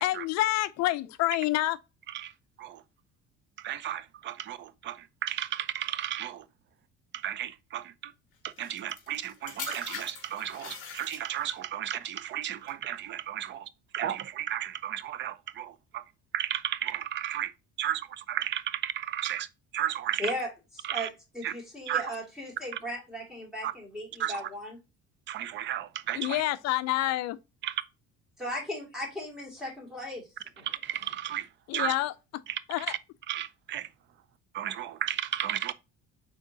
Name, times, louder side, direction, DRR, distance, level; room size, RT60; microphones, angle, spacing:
voice 1, 0.0-1.8 26.1-27.4 31.7-32.1 32.7-32.9, left 16 dB, 65° left, 0.5 m, -28 dB
voice 2, 3.6-6.4 7.2-8.1 8.4-16.0 16.3-17.5 17.8-19.5 19.7-20.3 20.8-21.1 21.4-21.5 21.9-22.1 23.6-23.7 24.2-24.5 25.3-26.4 27.6-27.7 30.6-31.5 31.7-31.9 32.5-32.6 32.9-33.0 33.3-33.9 34.5-35.7, right 11 dB, 40° right, 0.4 m, -33 dB
sound 1, 8.6-11.6 12.4-12.7, left 6 dB, 45° left, 2.2 m, -42 dB
voice 3, 20.2-20.5 20.7-21.1 21.3-24.8 28.4-30.2 30.6-30.7, equal, ahead, 2.5 m, -36 dB
5.0 x 3.8 x 2.7 m
cardioid pair, 150°, 29 cm